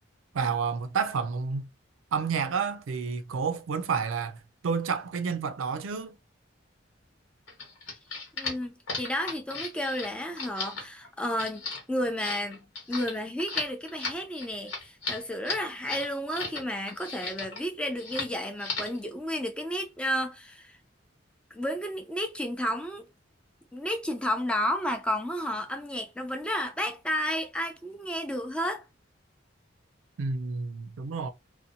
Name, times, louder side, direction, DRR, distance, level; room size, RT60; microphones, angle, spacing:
voice 1, 0.3-1.7 2.1-4.4 4.6-6.2 30.2-31.3, right 5 dB, 90° right, 0.4 m, -30 dB
sound 1, 7.5-16.6 16.9-17.6 18.0-18.3 18.6-19.0, left 3 dB, 75° left, 1.2 m, -36 dB
voice 2, 8.4-11.6 11.9-20.7 21.5-23.0 23.7-28.8, equal, 5° left, 0.4 m, -32 dB
2.6 x 2.1 x 2.7 m
head